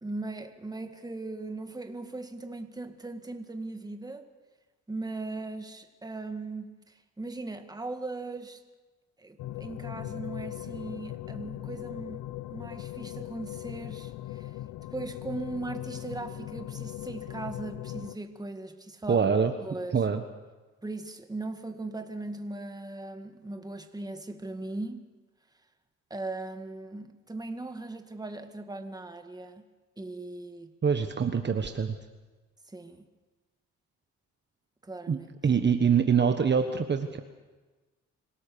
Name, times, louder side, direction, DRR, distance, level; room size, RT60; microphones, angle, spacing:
voice 1, 0.0-4.3 4.9-8.6 9.2-12.2 12.5-14.6 14.9-19.4 19.6-20.1 20.8-25.1 26.1-29.6 30.0-30.7 32.7-33.1 34.8-35.3, right 2 dB, 15° right, 7 dB, 1.9 m, -39 dB
sound 1, 9.4-18.2, left 14 dB, 85° left, 0.7 m, -39 dB
voice 2, 19.1-19.5 19.9-20.2 30.8-31.9 35.1-37.2, right 6 dB, 35° right, 7 dB, 1.3 m, -25 dB
26.0 x 17.5 x 7.0 m, 1.2 s
cardioid pair, 90°, 30 cm